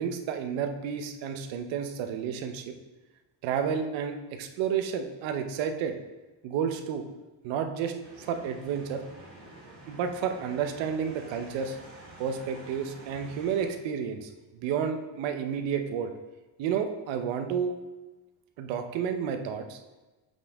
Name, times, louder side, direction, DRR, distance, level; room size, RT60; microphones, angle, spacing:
voice 1, 0.0-2.7 3.4-5.9 6.4-7.0 7.4-9.0 9.9-11.8 12.2-14.3 14.6-16.1 16.6-17.8 18.6-19.8, right 7 dB, 80° right, 6 dB, 0.9 m, -31 dB
sound 1, 8.0-13.7, right 2 dB, 30° right, 2.0 m, -49 dB
7.5 x 5.5 x 3.6 m, 1.1 s
cardioid pair, 175°, 45 cm